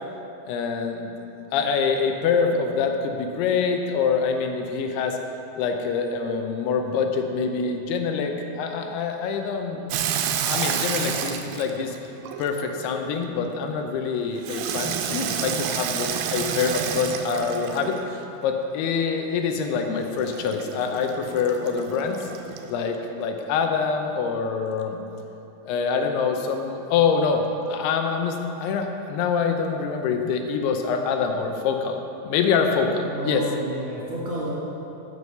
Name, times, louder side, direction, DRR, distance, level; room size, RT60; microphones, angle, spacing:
voice 1, 0.5-1.1 1.5-5.2 5.6-9.8 10.5-11.9 12.4-22.3 22.7-25.0 25.6-27.4 27.7-32.0 32.2-33.4, left 5 dB, 85° left, 4 dB, 2.8 m, -25 dB
Water tap faucet / Sink (filling or washing), 9.9-12.9 14.4-18.2 20.2-22.7, right 8 dB, 85° right, 2.6 m, -29 dB
voice 2, 33.0-34.5, right 2 dB, 40° right, -9 dB, 2.5 m, -31 dB
11.0 x 6.3 x 6.8 m, 2.8 s
omnidirectional pair, 4.6 m